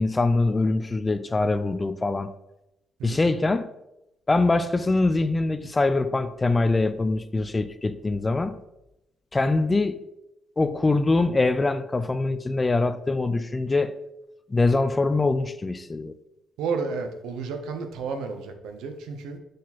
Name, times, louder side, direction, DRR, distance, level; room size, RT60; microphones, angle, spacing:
voice 1, 0.0-2.3 3.0-3.7 4.3-8.6 9.3-10.0 10.6-14.0 14.5-16.1, left 3 dB, 20° left, 0.4 m, -23 dB
voice 2, 16.6-19.4, right 5 dB, 90° right, 0.8 m, -32 dB
6.4 x 4.2 x 4.1 m
cardioid pair, 90°, 0 cm